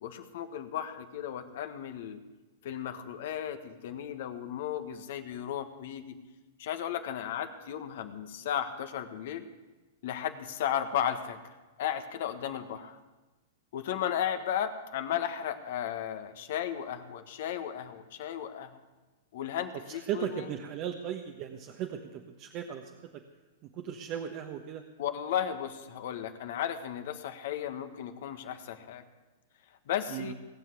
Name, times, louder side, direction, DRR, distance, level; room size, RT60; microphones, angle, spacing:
voice 1, 0.0-2.2 2.6-6.2 6.6-9.5 10.0-11.5 11.8-13.0 13.7-18.8 19.3-20.5 25.0-29.0 29.9-30.3, left 9 dB, 60° left, 8 dB, 1.4 m, -35 dB
voice 2, 19.9-23.2 23.8-24.8 30.1-30.3, right 9 dB, 40° right, 4 dB, 1.2 m, -37 dB
18.5 x 7.6 x 8.5 m, 1.2 s
hypercardioid pair, 110°, 0 cm